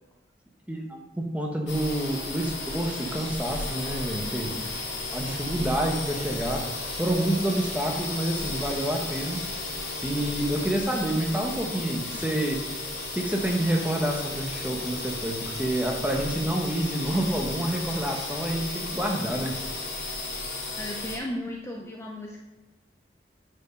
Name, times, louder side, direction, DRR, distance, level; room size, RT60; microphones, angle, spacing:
voice 1, 0.7-4.6 5.1-9.4 10.0-12.6 13.1-19.5, right 1 dB, 10° right, 1 dB, 1.0 m, -28 dB
sound 1, 1.7-21.2, left 2 dB, 85° left, 2.1 m, -34 dB
voice 2, 20.8-22.4, left 1 dB, 15° left, -1 dB, 0.6 m, -35 dB
8.7 x 4.6 x 5.4 m, 1.1 s
head